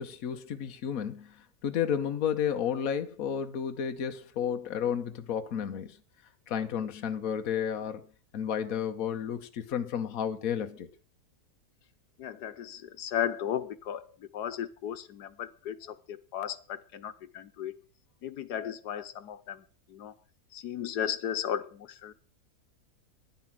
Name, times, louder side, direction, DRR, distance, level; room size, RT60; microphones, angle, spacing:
voice 1, 0.0-6.0 6.5-8.0 8.3-10.9, left 8 dB, 65° left, 1.4 m, -32 dB
voice 2, 12.2-17.7 18.2-20.1 20.5-22.1, left 9 dB, 90° left, 1.5 m, -35 dB
10.5 x 10.0 x 7.4 m
omnidirectional pair, 1.7 m